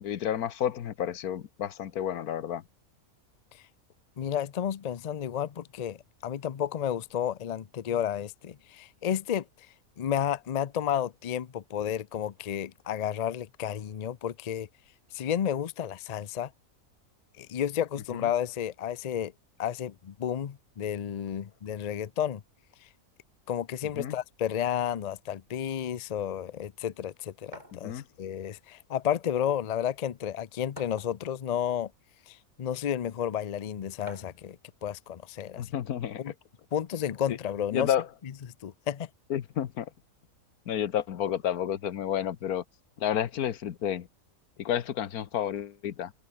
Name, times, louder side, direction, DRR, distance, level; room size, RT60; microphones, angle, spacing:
voice 1, 0.0-2.6 18.2-18.3 23.9-24.1 27.7-28.0 35.6-36.3 37.3-37.4 37.7-38.1 39.3-39.9 40.7-42.6 43.0-44.1 44.6-46.1, left 10 dB, 85° left, 1.5 m, -31 dB
voice 2, 4.2-9.7 10.0-14.7 15.1-16.5 17.4-19.3 19.6-22.4 23.5-31.9 32.3-35.7 36.2-36.3 36.7-37.9 38.6-39.1, left 9 dB, 60° left, 0.4 m, -32 dB
sound 1, 27.5-27.8 28.9-29.0 29.5-29.6 30.8-31.4 32.2-32.3 34.1-34.4, right 1 dB, 30° right, 8.2 m, -47 dB
open air
omnidirectional pair, 1.5 m